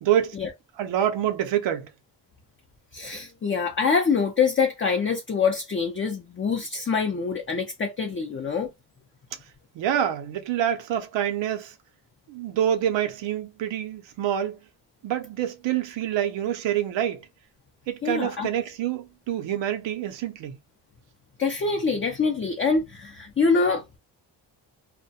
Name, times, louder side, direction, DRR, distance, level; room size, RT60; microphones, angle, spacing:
voice 1, 0.0-0.4 0.8-1.9 9.7-11.7 12.3-14.6 15.0-17.2 17.9-20.6, right 10 dB, 85° right, 0.7 m, -26 dB
voice 2, 2.9-8.7 18.0-18.5 21.4-23.8, left 5 dB, 30° left, 0.5 m, -25 dB
2.2 x 2.2 x 2.6 m
cardioid pair, 70°, 43 cm